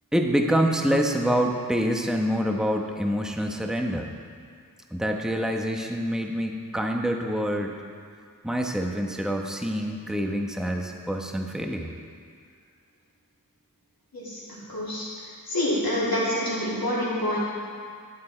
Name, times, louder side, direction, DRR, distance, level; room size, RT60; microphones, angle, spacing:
voice 1, 0.1-4.1 4.9-7.8 8.4-11.9, equal, ahead, 2 dB, 1.0 m, -26 dB
voice 2, 14.7-15.0 15.5-17.4, left 1 dB, 90° left, -8 dB, 2.9 m, -26 dB
12.5 x 10.5 x 4.4 m, 2.2 s
wide cardioid pair, 55°, 35 cm